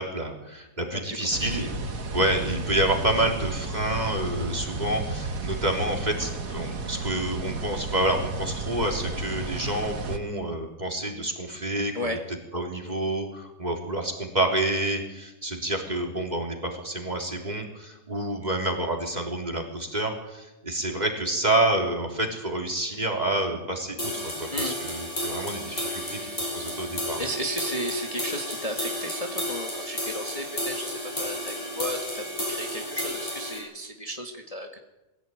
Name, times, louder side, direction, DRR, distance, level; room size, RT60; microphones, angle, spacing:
voice 1, 0.0-1.7 2.1-27.2, right 1 dB, 25° right, 1 dB, 3.7 m, -28 dB
sound 1, 1.3-10.2, right 2 dB, 60° right, 2.1 m, -33 dB
sound 2, 24.0-33.6, left 1 dB, 50° left, 8.6 m, -32 dB
voice 2, 27.2-34.8, equal, 25° left, 2 dB, 1.8 m, -34 dB
22.5 x 16.0 x 9.2 m, 1.0 s
omnidirectional pair, 1.7 m